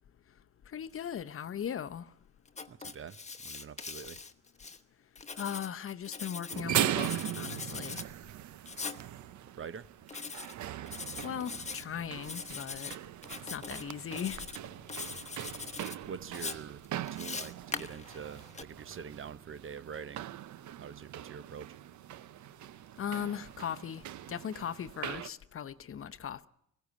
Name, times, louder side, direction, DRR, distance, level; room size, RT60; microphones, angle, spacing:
voice 1, 0.7-2.1 5.3-8.0 11.2-12.9 13.5-14.4 23.0-24.0 24.3-26.5, left 8 dB, 45° left, 0.8 m, -38 dB
Writing, 2.5-4.8 5.2-6.6 7.0-8.1 8.7-9.0 10.1-10.5 10.9-11.8 12.2-13.0 13.2-13.8 14.1-14.6 14.9-16.0 16.3-18.6, left 4 dB, 20° left, 1.1 m, -41 dB
voice 2, 2.7-4.2 9.4-9.9 16.1-20.4 20.7-21.8, right 7 dB, 45° right, 0.9 m, -45 dB
sound 1, 6.5-25.3, right 12 dB, 70° right, 0.7 m, -40 dB
sound 2, 10.5-20.1, right 5 dB, 85° right, 3.6 m, -59 dB
19.5 x 16.0 x 8.3 m
cardioid pair, 90°, 30 cm